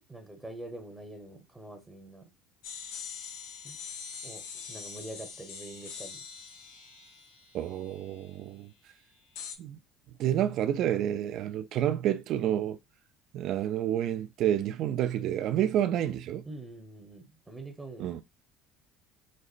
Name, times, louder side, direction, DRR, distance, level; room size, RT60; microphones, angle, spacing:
voice 1, 0.1-2.3 3.6-3.8 4.2-6.2 16.4-18.2, right 2 dB, 15° right, 0.8 m, -45 dB
sound 1, 2.6-8.3 9.4-9.6, left 6 dB, 85° left, 0.6 m, -43 dB
voice 2, 7.5-8.7 9.6-9.8 10.2-12.8 13.3-16.4 18.0-18.2, right 11 dB, 60° right, 0.4 m, -29 dB
5.2 x 2.0 x 2.4 m
supercardioid pair, 95°, 0 cm